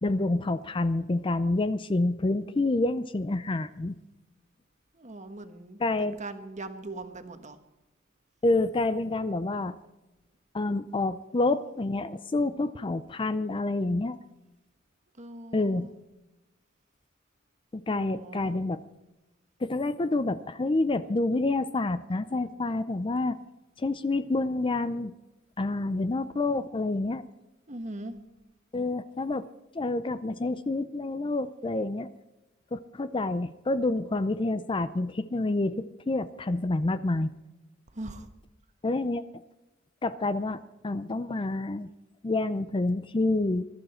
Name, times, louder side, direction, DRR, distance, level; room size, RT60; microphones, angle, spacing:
voice 1, 0.0-4.0 5.8-6.2 8.4-9.7 10.5-14.2 15.5-15.9 17.7-18.8 19.6-23.4 23.8-25.1 25.6-27.2 28.7-29.5 29.7-32.1 32.7-37.3 38.8-39.2 40.0-41.9 42.2-43.6, left 2 dB, 25° left, 13 dB, 0.5 m, -28 dB
voice 2, 4.9-7.6 15.2-15.9 17.9-18.6 27.7-28.2 37.9-38.3, right 2 dB, 35° right, 8 dB, 1.3 m, -41 dB
21.0 x 12.5 x 4.3 m, 1.0 s
head